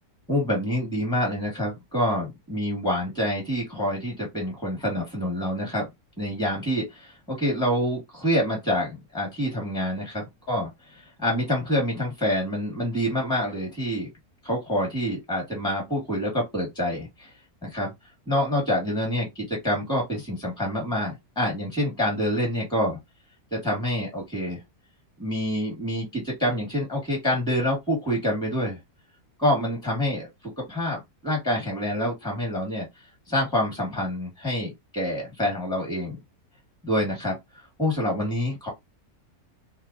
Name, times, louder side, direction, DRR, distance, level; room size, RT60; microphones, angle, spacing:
voice 1, 0.3-5.9 6.2-14.1 14.4-17.3 17.6-17.9 18.3-23.0 23.5-24.6 25.2-28.8 29.4-30.3 30.7-32.9 33.3-36.2 36.8-37.4 37.8-38.7, left 1 dB, 5° left, 1.3 m, -27 dB
2.7 x 2.3 x 2.6 m
omnidirectional pair, 1.6 m